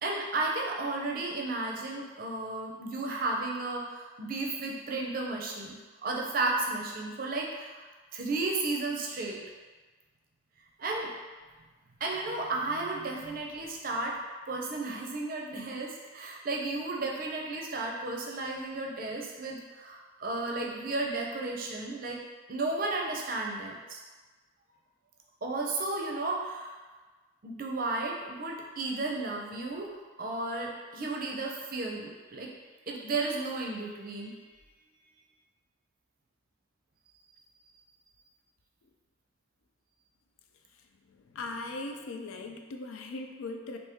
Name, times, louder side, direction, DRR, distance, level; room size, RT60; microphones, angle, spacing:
voice 1, 0.0-7.9 8.1-9.4 10.8-11.1 12.0-14.1 14.5-22.2 22.5-24.0 25.4-26.8 27.4-32.5 32.9-34.3, right 2 dB, 45° right, -1 dB, 0.5 m, -33 dB
voice 2, 41.1-43.8, left 2 dB, 85° left, 4 dB, 0.4 m, -39 dB
2.9 x 2.7 x 3.4 m, 1.3 s
head